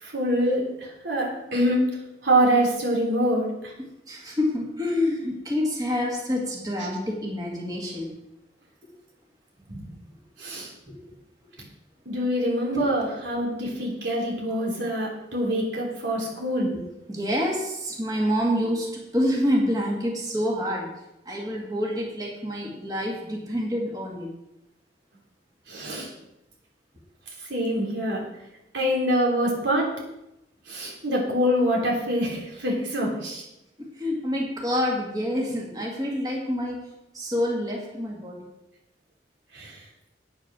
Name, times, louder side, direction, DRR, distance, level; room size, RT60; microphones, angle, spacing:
voice 1, 0.0-0.6 1.0-1.8 2.2-3.5 9.7-9.8 10.4-10.7 12.0-16.8 25.7-26.1 27.5-28.2 28.7-29.9 30.7-33.4 39.5-39.7, equal, 80° right, -2 dB, 3.3 m, -25 dB
voice 2, 4.1-8.1 10.9-11.0 12.7-12.8 17.1-18.9 19.1-20.9 21.3-24.3 34.0-36.8 37.1-38.5, left 1 dB, 20° right, -2 dB, 2.1 m, -27 dB
9.1 x 8.9 x 6.0 m, 0.89 s
head